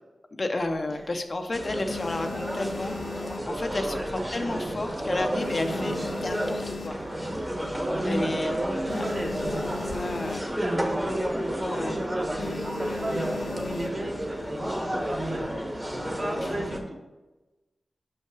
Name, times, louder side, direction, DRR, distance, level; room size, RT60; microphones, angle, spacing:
voice 1, 0.4-7.0 8.0-8.6 9.9-10.4 11.6-12.0, left 2 dB, 45° left, 5 dB, 0.7 m, -32 dB
sound 1, 0.6-1.3 1.7-4.2 4.5-4.8 5.1-7.4 7.8-7.9 8.1-8.2 8.6-10.8 11.1-11.3 11.7-11.9 12.4-14.2 14.9-15.5, left 6 dB, 85° left, 0.4 m, -39 dB
sound 2, 1.5-16.8, right 1 dB, 15° right, 1.2 m, -31 dB
voice 2, 7.8-9.5 10.3-11.0 12.0-15.4 15.8-15.9 16.2-17.0, right 1 dB, 45° right, -1 dB, 1.6 m, -36 dB
5.7 x 5.5 x 4.8 m, 1.1 s
wide cardioid pair, 80°, 0 cm